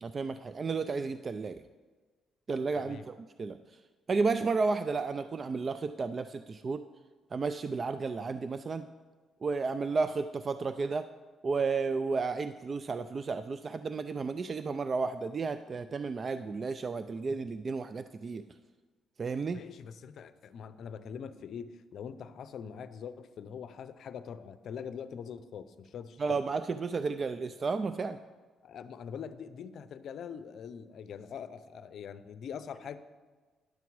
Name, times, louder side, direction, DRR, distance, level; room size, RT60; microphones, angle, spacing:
voice 1, 0.0-1.6 2.5-3.6 4.1-6.8 7.3-8.8 9.4-11.1 11.4-18.4 19.2-19.6 26.2-28.2, right 4 dB, 40° right, 11 dB, 0.3 m, -32 dB
voice 2, 2.8-3.1 19.5-26.4 28.6-33.0, left 7 dB, 65° left, 13 dB, 0.5 m, -43 dB
10.5 x 7.0 x 4.7 m, 1.4 s
cardioid pair, 90°, 0 cm